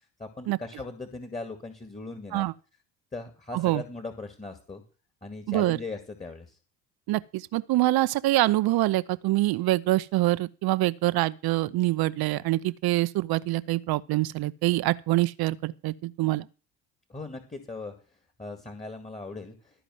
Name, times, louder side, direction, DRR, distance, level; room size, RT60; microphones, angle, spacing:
voice 1, 0.2-2.4 3.1-4.8 5.2-6.6 17.1-17.9 18.4-19.8, left 3 dB, 15° left, 2.1 m, -39 dB
voice 2, 5.5-5.8 7.1-16.5, right 17 dB, 50° right, 0.7 m, -25 dB
13.5 x 5.1 x 7.7 m
hypercardioid pair, 65°, 46 cm